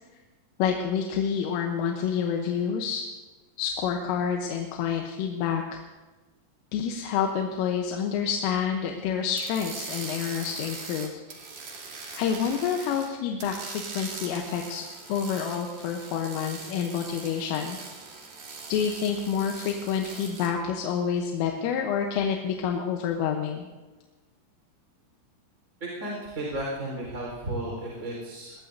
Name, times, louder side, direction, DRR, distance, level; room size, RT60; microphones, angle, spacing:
voice 1, 0.6-3.0 3.6-5.8 6.7-11.2 12.2-14.8 15.1-17.8 18.7-23.7, left 7 dB, 80° left, 2 dB, 3.5 m, -28 dB
sound 1, 9.3-13.1 13.4-20.5, right 4 dB, 55° right, 2.1 m, -41 dB
voice 2, 25.8-28.5, right 1 dB, 15° right, -4 dB, 3.9 m, -33 dB
21.5 x 20.0 x 2.7 m, 1.2 s
omnidirectional pair, 6.0 m